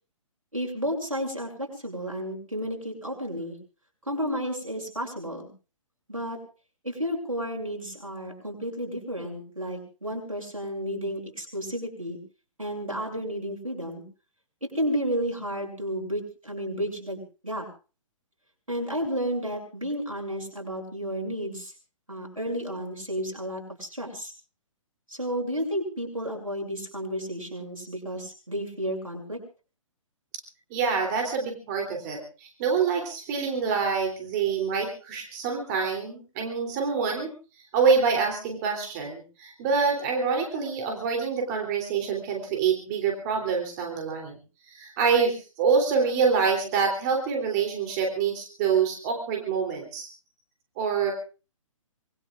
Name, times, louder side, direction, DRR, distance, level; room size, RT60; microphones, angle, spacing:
voice 1, 0.5-3.6 4.1-5.5 6.1-6.4 6.8-12.2 12.6-14.0 14.6-17.7 18.7-21.7 22.1-24.3 25.1-29.4, equal, 90° right, 1 dB, 6.7 m, -32 dB
voice 2, 30.7-37.3 37.7-44.4 44.7-50.1 50.8-51.1, right 5 dB, 30° right, 2 dB, 3.2 m, -26 dB
26.0 x 20.5 x 2.5 m, 0.35 s
figure-of-eight pair, 130°, 17 cm